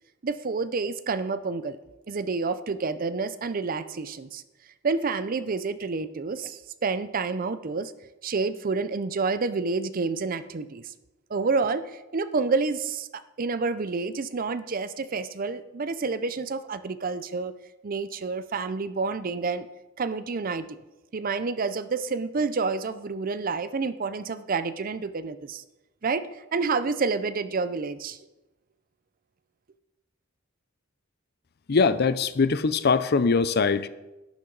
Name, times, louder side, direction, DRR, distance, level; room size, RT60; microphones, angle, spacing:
voice 1, 0.2-1.8 2.1-4.4 4.8-7.9 8.2-10.9 11.3-17.5 17.8-19.7 20.0-20.7 21.1-25.6 26.0-28.2, right 4 dB, 45° right, 13 dB, 0.5 m, -29 dB
voice 2, 31.7-33.9, left 4 dB, 50° left, 14 dB, 0.5 m, -22 dB
11.5 x 10.5 x 4.0 m, 1.0 s
head